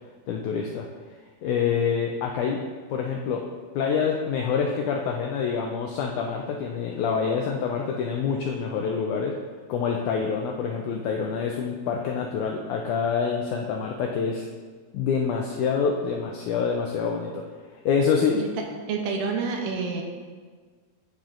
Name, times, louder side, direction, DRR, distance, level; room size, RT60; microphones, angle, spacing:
voice 1, 0.3-0.9 1.4-2.6 2.9-3.5 3.8-9.3 9.7-14.5 14.9-17.4 17.7-18.4, left 6 dB, 85° left, 1 dB, 1.7 m, -26 dB
voice 2, 18.9-20.0, right 5 dB, 75° right, 2 dB, 2.2 m, -28 dB
12.0 x 5.7 x 2.5 m, 1.5 s
omnidirectional pair, 4.1 m